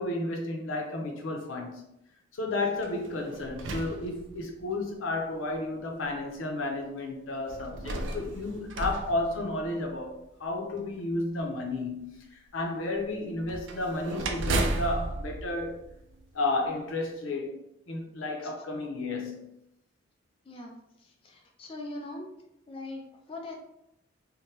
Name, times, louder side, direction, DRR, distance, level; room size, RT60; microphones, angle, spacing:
voice 1, 0.0-1.8 2.3-15.8 16.3-19.5, left 2 dB, 90° left, 0.6 m, -32 dB
sound 1, 2.8-4.8 5.5-5.6 7.5-10.1 13.4-16.5, right 2 dB, 70° right, 0.4 m, -34 dB
voice 2, 21.0-22.3 22.7-23.6, left 2 dB, 30° left, 0.3 m, -41 dB
3.2 x 2.1 x 2.8 m
head